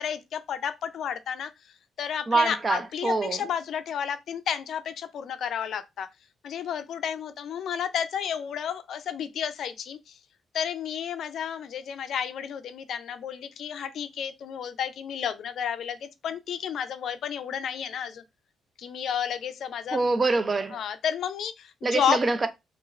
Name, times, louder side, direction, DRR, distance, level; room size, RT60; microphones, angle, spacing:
voice 1, 0.0-6.1 6.4-10.2 10.5-18.2 18.8-20.0 20.7-22.2, left 8 dB, 65° left, 0.3 m, -31 dB
voice 2, 2.3-3.4 19.9-20.8 21.8-22.5, right 3 dB, 30° right, 0.4 m, -25 dB
3.0 x 2.4 x 2.4 m
cardioid pair, 90°, 0 cm